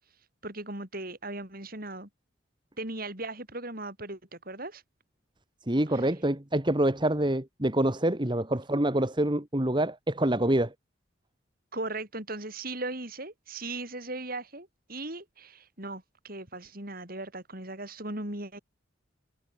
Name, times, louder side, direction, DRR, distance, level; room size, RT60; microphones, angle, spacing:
voice 1, 0.4-2.1 2.8-4.8 5.9-6.1 11.7-18.6, right 2 dB, 45° right, 7.9 m, -38 dB
voice 2, 5.7-10.7, right 1 dB, 25° right, 1.7 m, -26 dB
head